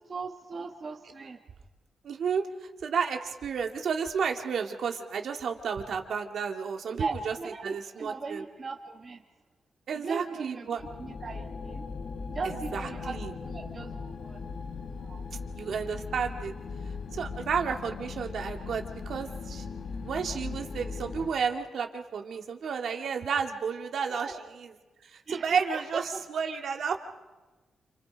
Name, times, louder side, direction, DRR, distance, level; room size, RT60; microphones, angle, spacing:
voice 1, 0.1-1.4 6.9-9.2 9.9-11.9 12.3-14.4 15.0-15.2 24.1-24.4 25.3-26.2, right 4 dB, 35° right, 2 dB, 1.3 m, -38 dB
voice 2, 2.0-8.4 9.9-10.8 12.4-13.3 15.5-16.5 17.1-19.7 20.0-24.8 25.0-27.0, right 6 dB, 65° right, 4 dB, 2.1 m, -32 dB
sound 1, 10.8-21.3, left 4 dB, 55° left, 1.9 m, -39 dB
29.0 x 27.5 x 5.2 m, 1.2 s
wide cardioid pair, 140°, 0 cm